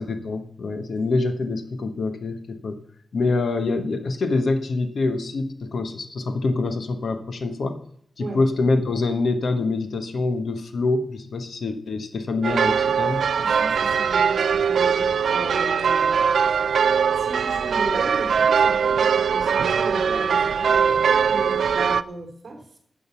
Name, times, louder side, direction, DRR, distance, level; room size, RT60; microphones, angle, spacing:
voice 1, 0.0-2.8 3.1-7.8 8.2-13.2, left 3 dB, 60° left, 8 dB, 1.2 m, -25 dB
sound 1, 12.4-22.0, right 6 dB, 75° right, 0.4 m, -21 dB
voice 2, 13.4-22.8, right 2 dB, 40° right, 2 dB, 3.4 m, -36 dB
12.5 x 8.9 x 5.8 m, 0.66 s
wide cardioid pair, 160°, 0 cm